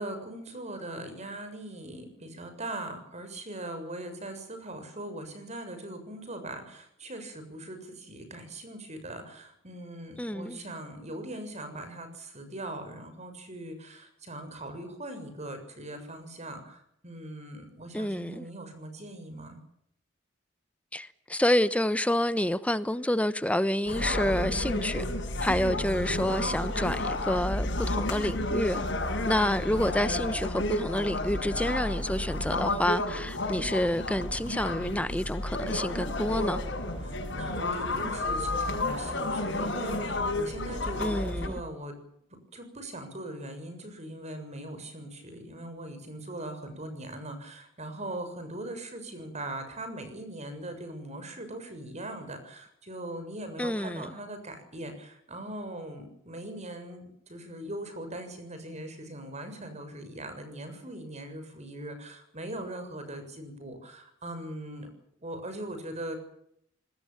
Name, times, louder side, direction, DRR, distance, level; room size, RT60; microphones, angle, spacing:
voice 1, 0.0-19.6 37.0-41.9 42.5-64.9 65.2-66.2, right 1 dB, 35° right, 7.2 m, -40 dB
voice 2, 10.2-10.6 17.9-18.5 20.9-25.1 25.4-36.6 41.0-41.6 53.6-54.1, left 1 dB, 5° left, 0.9 m, -28 dB
sound 1, 23.9-41.5, left 1 dB, 65° left, 6.8 m, -31 dB
26.5 x 20.5 x 7.4 m
head